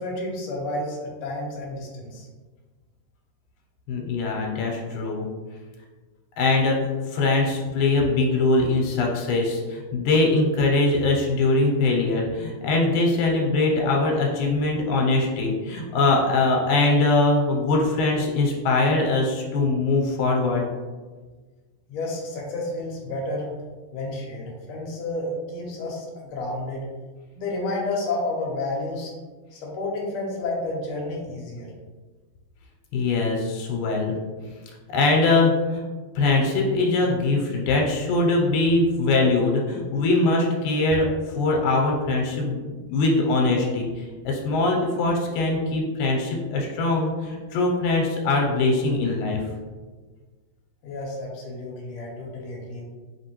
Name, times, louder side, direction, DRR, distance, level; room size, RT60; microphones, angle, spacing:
voice 1, 0.0-2.3 21.9-23.5 23.9-26.8 27.3-29.1 29.5-31.7 50.8-52.8, left 2 dB, 65° left, -2 dB, 1.4 m, -31 dB
voice 2, 3.9-5.3 6.4-20.7 32.9-34.2 34.9-35.8 36.2-49.4, left 2 dB, 85° left, 0 dB, 2.1 m, -22 dB
5.3 x 3.0 x 2.9 m, 1.3 s
omnidirectional pair, 3.4 m